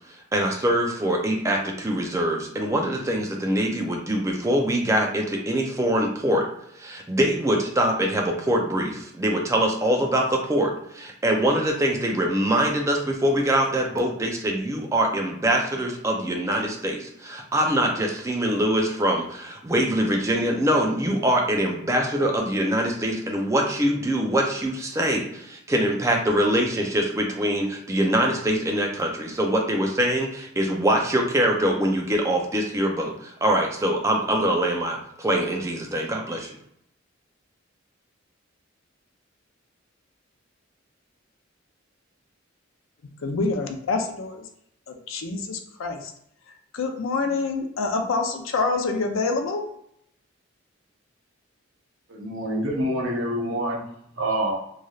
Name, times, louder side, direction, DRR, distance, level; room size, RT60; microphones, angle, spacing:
voice 1, 0.3-6.5 6.8-36.6, right 1 dB, 15° right, 1 dB, 0.4 m, -24 dB
voice 2, 43.2-44.4 44.9-46.1 46.7-49.7, left 3 dB, 80° left, 4 dB, 0.5 m, -26 dB
voice 3, 52.1-53.8 54.2-54.5, right 1 dB, 75° right, -1 dB, 0.8 m, -26 dB
3.1 x 2.6 x 2.3 m, 0.72 s
head